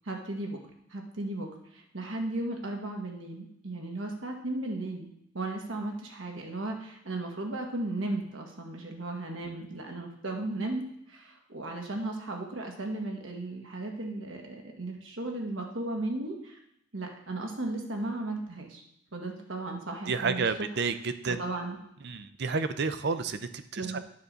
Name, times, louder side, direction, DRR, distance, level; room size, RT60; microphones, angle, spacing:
voice 1, 0.0-0.6 0.9-5.1 5.3-16.6 16.9-18.8 19.1-20.5 21.3-21.8 23.8-24.0, right 2 dB, 75° right, 1 dB, 1.6 m, -35 dB
voice 2, 20.1-21.4 22.0-24.0, right 4 dB, 60° right, 11 dB, 0.6 m, -30 dB
9.5 x 3.8 x 6.8 m, 0.74 s
head